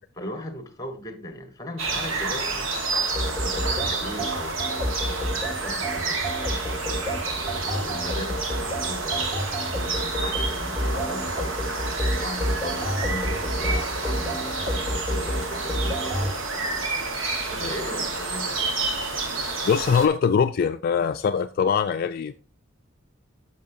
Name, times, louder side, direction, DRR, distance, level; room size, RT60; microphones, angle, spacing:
voice 1, 0.1-2.7 3.2-4.6 5.1-6.3 7.3-11.5 12.2-16.9 17.5-18.6, left 1 dB, 20° left, 1.1 m, -38 dB
sound 1, 1.8-20.1, right 3 dB, 70° right, 1.4 m, -29 dB
sound 2, 3.2-16.3, equal, 10° right, 2.1 m, -29 dB
voice 2, 19.6-22.3, left 6 dB, 50° left, 0.3 m, -22 dB
10.5 x 6.5 x 2.6 m
head